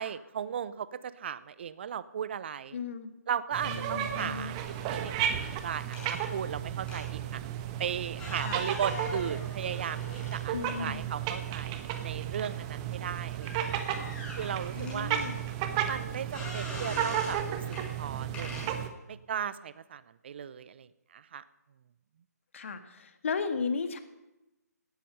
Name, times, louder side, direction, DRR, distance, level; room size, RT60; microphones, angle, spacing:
voice 1, 0.0-2.8 3.3-7.4 7.8-13.8 14.4-15.1 15.8-17.6 18.0-18.5 19.1-20.9 21.1-21.4, right 8 dB, 40° right, 17 dB, 0.7 m, -36 dB
voice 2, 2.7-3.1 3.6-4.6 8.4-8.6 10.5-11.1 14.8-15.4 22.5-24.0, left 5 dB, 50° left, 9 dB, 1.6 m, -35 dB
sound 1, 3.5-18.9, right 10 dB, 20° right, 1.1 m, -34 dB
sound 2, 4.4-5.2 5.9-6.2 6.9-7.1 8.1-10.8 11.3-11.4 13.4-15.3 16.3-17.4 17.7-17.9 18.3-18.7, left 2 dB, 10° left, 6.1 m, -42 dB
17.5 x 13.0 x 5.5 m, 0.97 s
figure-of-eight pair, 145°, 9 cm